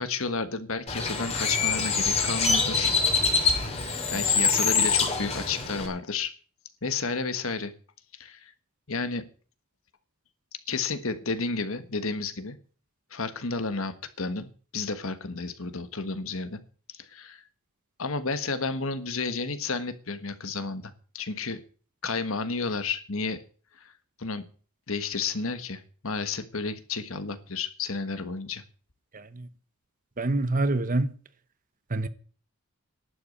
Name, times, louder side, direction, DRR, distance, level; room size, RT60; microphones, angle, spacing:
voice 1, 0.0-2.9 4.1-6.3 6.8-7.7 8.1-8.5 8.9-9.2 10.7-12.6 13.1-16.6 17.0-17.4 18.0-21.6 22.0-23.4 23.8-23.9 24.2-24.4 24.9-28.6, left 4 dB, 65° left, 1.4 m, -31 dB
Bird, 0.9-5.9, left 4 dB, 30° left, 2.6 m, -25 dB
voice 2, 29.1-29.5 30.2-31.1 31.9-32.1, right 2 dB, 35° right, 0.9 m, -26 dB
11.5 x 8.3 x 8.6 m
head